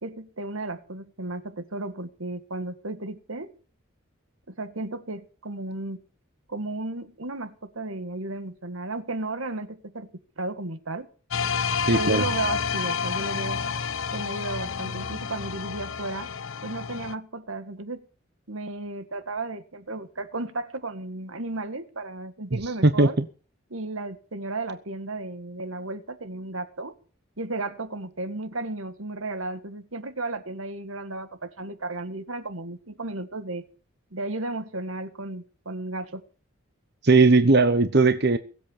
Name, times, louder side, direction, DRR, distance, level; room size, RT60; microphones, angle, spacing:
voice 1, 0.0-3.5 4.5-6.0 6.5-10.1 10.4-11.1 11.9-13.6 14.1-16.3 16.6-18.0 18.5-23.2 23.7-27.0 27.4-33.7 34.1-36.2, right 2 dB, 80° right, 1.9 m, -34 dB
sound 1, 11.3-17.1, left 6 dB, 75° left, 0.9 m, -29 dB
voice 2, 11.9-12.2 22.5-23.2 37.0-38.4, right 3 dB, 55° right, 1.0 m, -19 dB
23.0 x 8.1 x 7.3 m
head